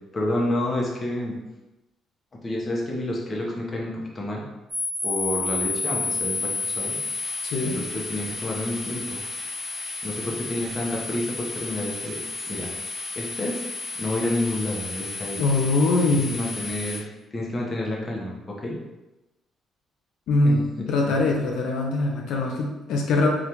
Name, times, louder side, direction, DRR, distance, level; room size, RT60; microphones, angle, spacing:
voice 1, 0.1-1.4 2.4-4.4 5.0-7.0 7.6-9.2 10.0-12.2 12.5-12.7 13.2-13.6 14.0-15.4 16.1-17.0 17.3-18.8 20.4-20.6 21.1-21.2, left 1 dB, 30° left, -2 dB, 0.7 m, -29 dB
sound 1, 4.7-17.0, left 3 dB, 20° right, 1.1 m, -31 dB
voice 2, 7.4-7.8 15.4-16.3 20.3-23.3, left 2 dB, 75° left, 0 dB, 0.4 m, -22 dB
3.4 x 2.4 x 2.8 m, 1.0 s
cardioid pair, 115°, 0 cm